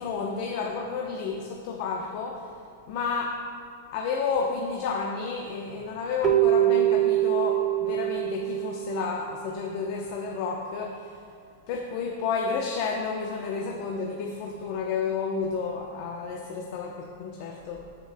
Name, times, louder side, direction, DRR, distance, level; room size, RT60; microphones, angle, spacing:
voice 1, 0.0-2.5 2.9-3.4 3.9-11.2 11.7-17.9, left 5 dB, 50° left, 1 dB, 0.8 m, -31 dB
Keyboard (musical), 6.2-9.5, right 13 dB, 25° right, 0.4 m, -24 dB
16.5 x 6.9 x 2.2 m, 2.3 s
supercardioid pair, 150°, 0 cm